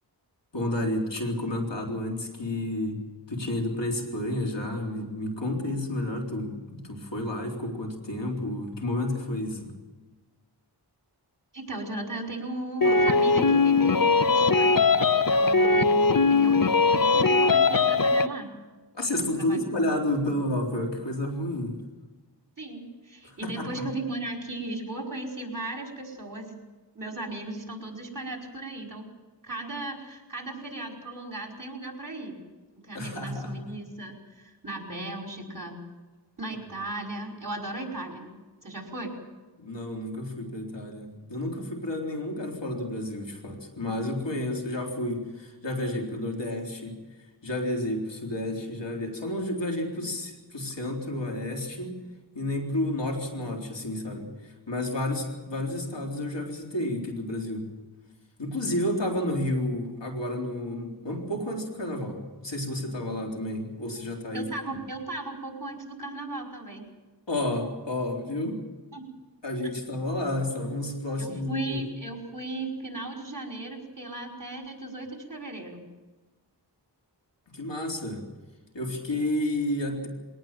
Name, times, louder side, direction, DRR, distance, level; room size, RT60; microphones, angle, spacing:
voice 1, 0.5-3.0 3.3-9.7 18.9-21.8 23.2-23.8 32.9-33.7 39.6-47.0 47.4-52.0 52.3-57.7 58.4-64.5 67.3-68.6 69.4-71.8 77.5-78.3 78.7-80.1, left 1 dB, 90° left, 1 dB, 4.0 m, -31 dB
voice 2, 11.5-18.5 19.4-19.7 22.6-26.6 27.0-29.1 29.4-32.4 32.8-35.8 36.4-38.3 38.6-39.1 64.3-66.9 68.9-69.1 71.1-75.8, right 2 dB, 50° right, 1 dB, 5.2 m, -36 dB
sound 1, 12.8-18.3, left 4 dB, 50° left, 1.0 m, -20 dB
23.0 x 18.0 x 7.5 m, 1.2 s
wide cardioid pair, 45°, 42 cm